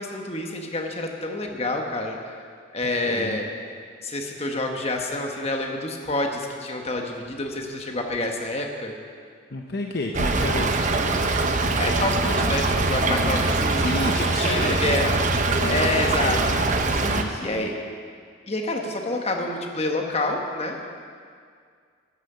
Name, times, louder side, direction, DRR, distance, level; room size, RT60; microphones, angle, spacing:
voice 1, 0.0-2.2 2.7-3.5 4.0-8.9 11.7-15.1 15.7-16.4 17.4-17.7 18.5-20.9, left 2 dB, 30° left, 2 dB, 1.2 m, -28 dB
voice 2, 2.8-3.4 9.5-10.9 13.8-15.0 15.5-16.6 16.9-17.8, left 2 dB, 50° left, 2 dB, 0.7 m, -31 dB
Stream / Trickle dribble, 10.1-17.2, right 3 dB, 35° right, 0.7 m, -23 dB
11.5 x 9.8 x 6.9 m, 2.1 s
head